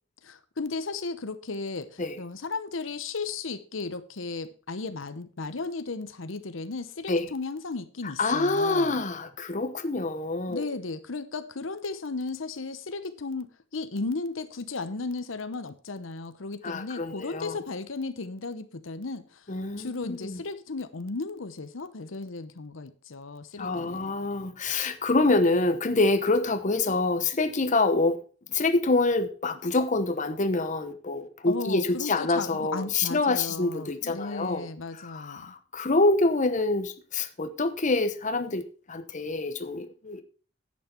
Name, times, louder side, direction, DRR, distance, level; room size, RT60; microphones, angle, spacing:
voice 1, 0.2-9.0 10.5-24.1 31.4-35.5, left 3 dB, 75° left, 0.9 m, -35 dB
voice 2, 8.2-10.7 16.6-17.6 19.5-20.4 23.6-28.2 28.5-34.7 34.9-40.2, left 2 dB, 40° left, 1.0 m, -26 dB
10.5 x 8.6 x 4.5 m
head